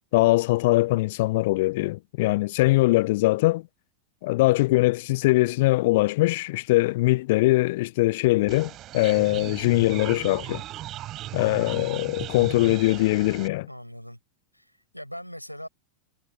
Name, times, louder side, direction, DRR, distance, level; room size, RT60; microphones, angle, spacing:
voice 1, 0.1-3.6 4.2-10.6 11.3-13.7, left 20 dB, 50° left, 0.4 m, -22 dB
sound 1, 8.5-13.5, right 14 dB, 35° right, 7.3 m, -37 dB
voice 2, 13.7-14.2 14.5-15.7, equal, 90° left, 6.1 m, -40 dB
figure-of-eight pair, 90°, 0 cm